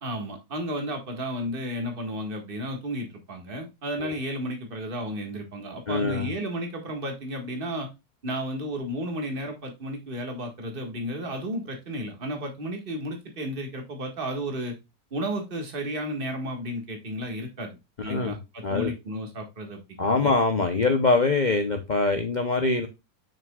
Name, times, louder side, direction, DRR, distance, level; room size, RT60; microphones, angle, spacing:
voice 1, 0.0-7.9 8.2-14.8 15.1-17.7 18.0-20.1, equal, 30° right, 3 dB, 1.8 m, -33 dB
voice 2, 5.9-6.3 18.0-18.4 18.6-18.9 20.0-22.9, left 3 dB, 45° left, 6 dB, 0.5 m, -24 dB
7.2 x 6.0 x 2.3 m, 0.24 s
omnidirectional pair, 1.9 m